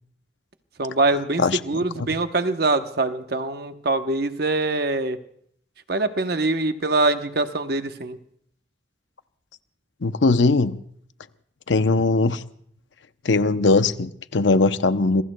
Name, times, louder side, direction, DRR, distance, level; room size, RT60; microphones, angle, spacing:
voice 1, 0.8-5.2 5.9-8.2, right 2 dB, 55° right, 1.0 m, -23 dB
voice 2, 10.0-10.8 11.7-12.4 13.2-15.2, left 3 dB, 75° left, 0.7 m, -20 dB
27.0 x 22.0 x 2.3 m
head